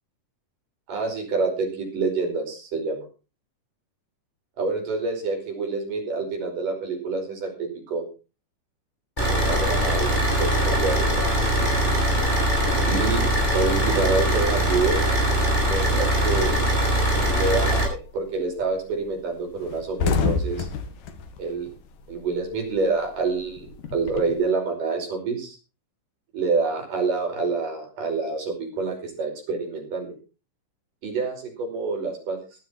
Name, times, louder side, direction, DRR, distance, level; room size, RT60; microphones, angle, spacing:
voice 1, 0.9-3.0 4.6-8.0 9.3-10.1 10.4-11.4 12.9-15.0 15.7-16.6 17.2-20.7 21.4-21.7 22.1-25.6 26.3-30.1 31.0-32.4, right 4 dB, 80° right, 2 dB, 6.7 m, -27 dB
Car / Idling, 9.2-17.8, right 1 dB, 15° left, 7.4 m, -22 dB
sound 1, 18.0-18.2 18.6-18.8 19.0-19.2 19.5-22.5 22.8-24.4, left 5 dB, 75° left, 3.3 m, -28 dB
16.0 x 13.0 x 4.4 m, 0.33 s
omnidirectional pair, 3.7 m